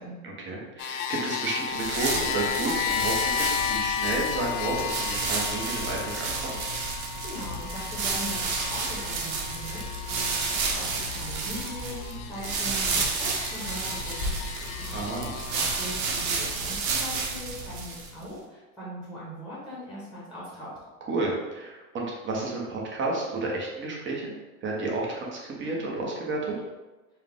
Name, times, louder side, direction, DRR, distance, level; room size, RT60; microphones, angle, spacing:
voice 1, 0.2-6.6 14.9-15.4 21.1-24.3 24.6-26.5, right 3 dB, 30° right, -2 dB, 1.1 m, -31 dB
sound 1, 0.8-15.9, left 8 dB, 85° left, 0.5 m, -34 dB
sound 2, 1.7-18.2, right 4 dB, 80° right, 0.9 m, -31 dB
voice 2, 7.2-15.0 15.5-20.7, right 1 dB, ahead, -7 dB, 1.2 m, -40 dB
sound 3, 14.2-16.3, left 3 dB, 65° left, 0.9 m, -37 dB
4.6 x 2.4 x 3.6 m, 1.1 s
supercardioid pair, 125°, 42 cm